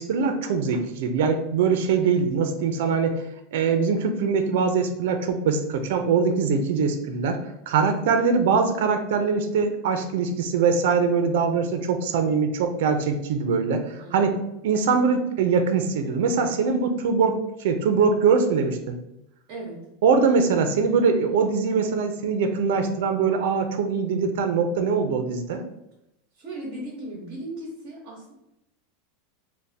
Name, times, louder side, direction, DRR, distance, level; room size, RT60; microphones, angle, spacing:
voice 1, 0.0-3.2 3.5-14.3 14.6-19.0 20.0-25.6, right 5 dB, 65° right, 7 dB, 0.5 m, -22 dB
voice 2, 14.0-14.4 19.5-19.8 26.3-28.3, right 1 dB, 35° right, -4 dB, 0.8 m, -37 dB
3.4 x 2.1 x 4.0 m, 0.85 s
supercardioid pair, 170°, 0 cm